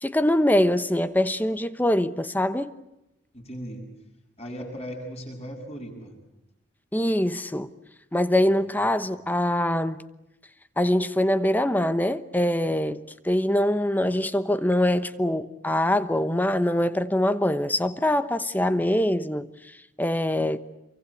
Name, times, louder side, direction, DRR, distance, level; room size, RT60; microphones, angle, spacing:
voice 1, 0.0-2.7 6.9-7.7 8.1-10.0 10.8-19.5 20.0-20.6, left 1 dB, 10° left, 1.0 m, -23 dB
voice 2, 3.3-3.9 4.4-6.2 8.4-8.9, equal, 35° left, 7.9 m, -38 dB
28.0 x 24.0 x 8.5 m
head